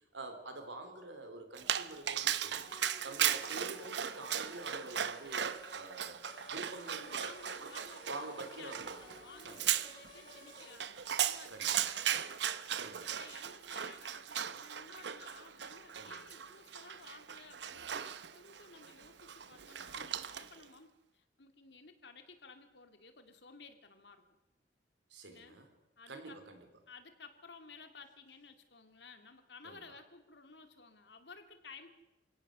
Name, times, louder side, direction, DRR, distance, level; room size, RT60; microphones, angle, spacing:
voice 1, 0.0-7.3 8.1-9.1 9.4-9.7 11.5-11.9 12.8-13.2 16.0-16.3 19.7-20.2 25.1-25.7 26.1-26.6 29.6-29.8, right 2 dB, 85° right, 6 dB, 4.1 m, -48 dB
Dog, 1.6-20.6, right 9 dB, 65° right, 0.9 m, -37 dB
sound 1, 2.4-10.7, left 1 dB, 25° left, 4.0 m, -55 dB
voice 2, 7.1-12.2 13.2-24.3 25.2-25.6 26.0-26.4 26.9-31.9, left 4 dB, 65° left, 7 dB, 2.6 m, -56 dB
28.0 x 17.0 x 6.8 m, 1.0 s
head